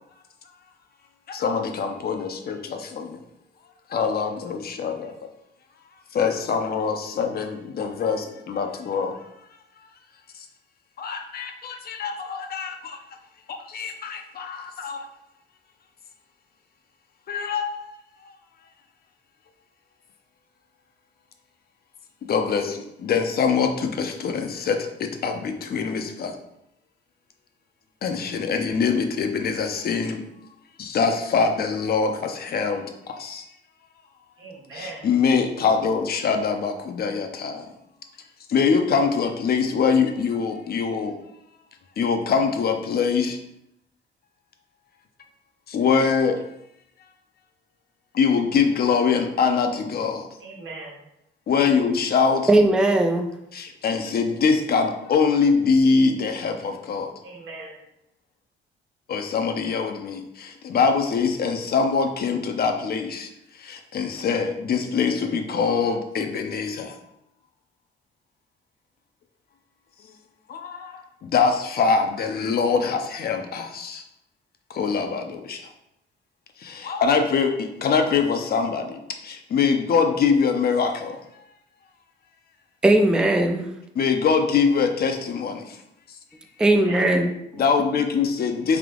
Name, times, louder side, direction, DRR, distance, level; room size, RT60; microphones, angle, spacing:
voice 1, 1.3-3.2 3.9-5.1 6.1-9.2 11.0-13.0 13.5-15.1 17.3-18.0 22.3-26.3 28.0-30.2 30.8-33.5 34.7-37.7 38.5-41.2 42.0-43.4 45.7-46.4 48.1-50.3 51.5-52.5 53.5-57.1 59.1-63.3 63.6-66.9 70.5-74.0 74.7-75.7 76.6-81.2 84.0-85.8 87.6-88.8, left 5 dB, 50° left, 5 dB, 0.6 m, -23 dB
voice 2, 34.4-35.0 50.4-51.0 57.2-57.8 86.6-87.2, right 3 dB, 85° right, -3 dB, 1.3 m, -38 dB
voice 3, 52.5-53.3 82.8-83.6 86.6-87.6, right 1 dB, 5° right, 4 dB, 0.4 m, -19 dB
3.4 x 2.8 x 3.7 m, 0.82 s
cardioid pair, 90°, 20 cm